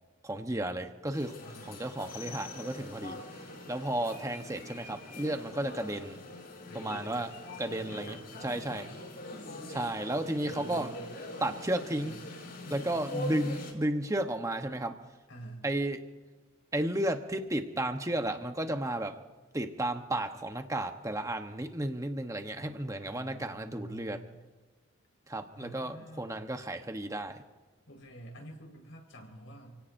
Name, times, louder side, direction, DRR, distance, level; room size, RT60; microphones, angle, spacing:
voice 1, 0.2-1.3 1.6-3.2 3.7-6.2 6.7-7.3 7.6-8.2 8.4-8.9 9.7-10.9 11.4-12.2 12.7-15.0 15.6-16.0 16.7-19.2 19.5-24.2 25.3-27.4, right 1 dB, 15° right, 6 dB, 1.0 m, -33 dB
sound 1, 1.1-13.7, left 2 dB, 50° left, 5.5 m, -43 dB
voice 2, 1.4-1.8 6.7-8.9 10.4-11.1 12.0-12.2 12.6-12.9 15.3-15.7 22.6-24.4 25.5-26.5 27.9-29.8, right 1 dB, 70° left, 1 dB, 4.9 m, -49 dB
29.0 x 17.5 x 2.7 m, 1.3 s
head